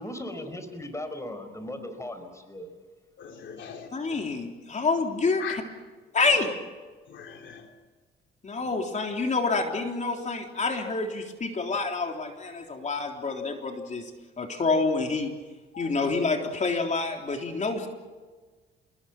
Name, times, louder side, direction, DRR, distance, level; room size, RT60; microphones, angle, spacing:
voice 1, 0.0-2.7, left 1 dB, 15° left, 8 dB, 5.0 m, -37 dB
voice 2, 3.2-4.2 5.4-5.6 7.1-7.6 8.6-8.7 15.7-16.1, left 8 dB, 70° left, 4 dB, 3.2 m, -40 dB
voice 3, 3.9-5.6 6.1-6.5 8.4-14.1 14.4-15.3 15.8-17.9, left 3 dB, 35° left, 3 dB, 3.7 m, -27 dB
27.5 x 22.0 x 6.2 m, 1.4 s
cardioid pair, 90°, 20 cm